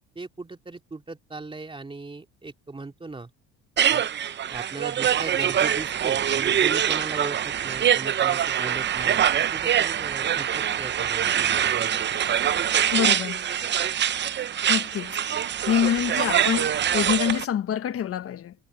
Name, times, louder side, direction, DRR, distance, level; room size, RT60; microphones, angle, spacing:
voice 1, 0.1-3.3 3.9-4.0 4.5-11.9, right 3 dB, 15° right, 2.5 m, -38 dB
sound 1, 3.8-17.4, right 9 dB, 35° right, 0.7 m, -24 dB
voice 2, 12.9-13.5 14.7-15.2 15.7-18.5, left 9 dB, 50° left, 1.3 m, -26 dB
cardioid pair, 95°, 30 cm